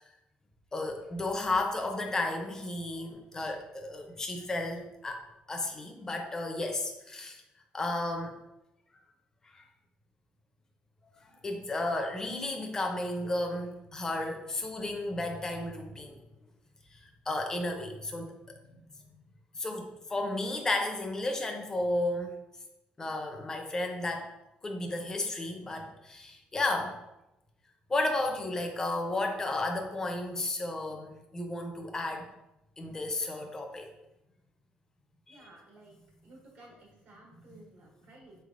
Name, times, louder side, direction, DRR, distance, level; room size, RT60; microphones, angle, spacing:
voice 1, 0.7-7.4 7.7-8.3 9.5-9.6 11.4-16.2 17.3-18.3 18.7-18.8 19.6-22.3 23.0-24.3 24.6-27.0 27.9-32.3 32.8-33.9 35.3-35.5 37.3-37.6, left 2 dB, 20° left, 3 dB, 0.5 m, -33 dB
voice 2, 35.3-35.9 36.2-38.4, right 2 dB, 75° right, -3 dB, 1.5 m, -55 dB
3.8 x 3.3 x 2.5 m, 0.91 s
cardioid pair, 125°, 3 cm